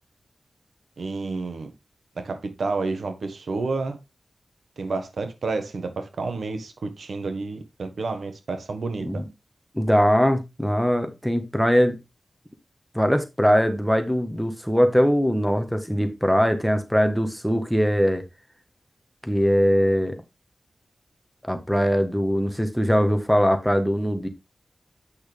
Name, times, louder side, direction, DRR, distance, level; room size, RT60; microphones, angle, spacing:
voice 1, 1.0-1.7 2.2-4.0 4.8-9.2, right 3 dB, 80° right, 1.3 m, -30 dB
voice 2, 9.7-12.0 12.9-18.2 19.2-20.2 21.5-24.3, equal, ahead, 1.4 m, -21 dB
8.5 x 6.2 x 3.4 m
wide cardioid pair, 100°, 0 cm